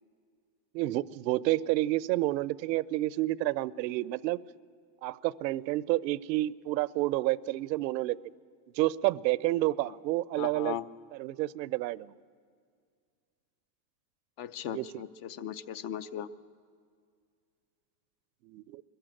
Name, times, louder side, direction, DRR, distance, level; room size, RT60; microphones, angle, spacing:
voice 1, 0.7-4.4 5.0-8.2 8.8-10.8 11.1-12.1 14.7-15.0 18.5-18.8, right 17 dB, 85° right, 20 dB, 0.7 m, -29 dB
voice 2, 10.4-10.8 14.4-16.3, left 10 dB, 50° left, 14 dB, 0.8 m, -37 dB
23.0 x 14.5 x 8.9 m, 2.1 s
supercardioid pair, 150°, 50 cm